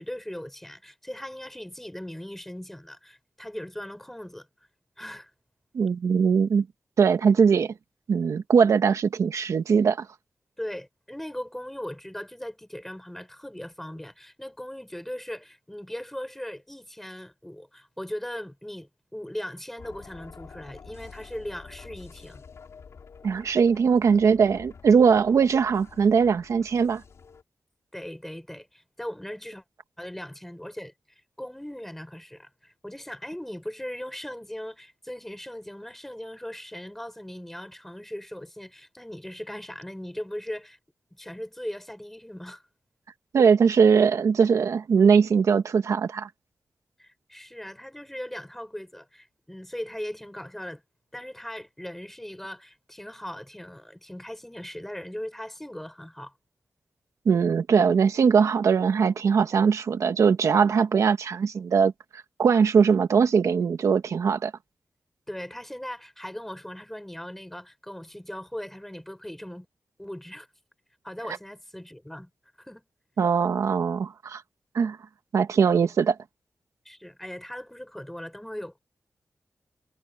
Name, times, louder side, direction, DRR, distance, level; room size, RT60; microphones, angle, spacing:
voice 1, 0.0-4.5 5.0-5.3 10.6-22.4 27.9-29.6 30.0-30.9 31.4-40.8 41.1-42.6 47.0-50.8 51.1-56.3 65.3-69.7 70.0-70.5 71.0-72.3 72.6-72.8 76.8-78.8, left 1 dB, 5° left, 6.0 m, -39 dB
voice 2, 5.7-6.7 7.0-7.7 8.1-10.1 23.2-27.0 43.3-46.3 57.2-64.5 73.2-74.4 74.7-75.0 75.3-76.2, right 6 dB, 85° right, 1.5 m, -21 dB
sound 1, 19.8-27.4, left 5 dB, 65° left, 5.1 m, -48 dB
wide cardioid pair, 155°, 5 cm